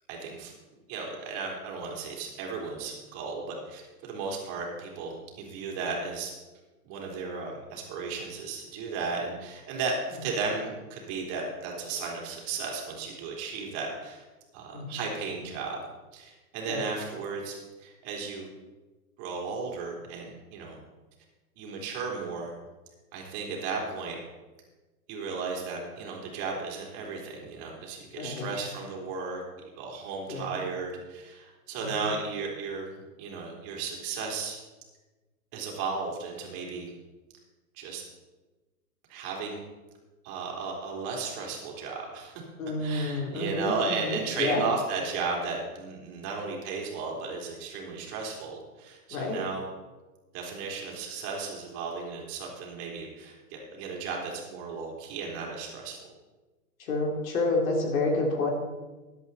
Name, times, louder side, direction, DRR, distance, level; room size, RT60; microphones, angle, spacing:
voice 1, 0.1-0.5 0.9-6.3 6.8-14.2 14.5-15.8 16.1-18.5 19.2-20.8 21.6-22.5 23.1-24.2 25.1-29.4 29.8-34.6 35.5-36.9 37.7-38.0 39.1-39.6 40.2-42.4 42.8-49.7 50.3-56.0, right 4 dB, 30° right, -1 dB, 3.4 m, -35 dB
voice 2, 28.2-28.5 30.3-30.5 31.8-31.9 42.6-43.7 44.4-44.6 49.1-49.4 56.9-58.5, left 2 dB, 60° left, 2 dB, 3.5 m, -28 dB
14.0 x 11.5 x 4.1 m, 1.2 s
hypercardioid pair, 145°, 45 cm